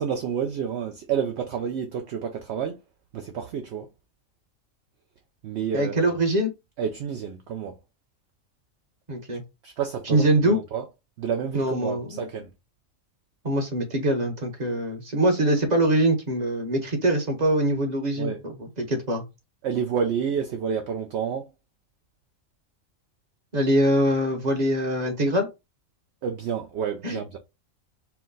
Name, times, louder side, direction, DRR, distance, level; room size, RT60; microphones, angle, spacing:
voice 1, 0.0-2.8 3.1-3.9 5.4-6.1 6.8-7.8 9.6-10.8 11.2-12.5 18.2-18.4 19.6-21.5 26.2-27.4, right 7 dB, 65° right, 0.8 m, -29 dB
voice 2, 5.7-6.5 9.1-9.4 10.1-10.6 11.5-12.3 13.4-19.2 23.5-25.5 27.0-27.2, right 1 dB, 35° right, 1.0 m, -23 dB
4.6 x 2.1 x 3.8 m
omnidirectional pair, 1.4 m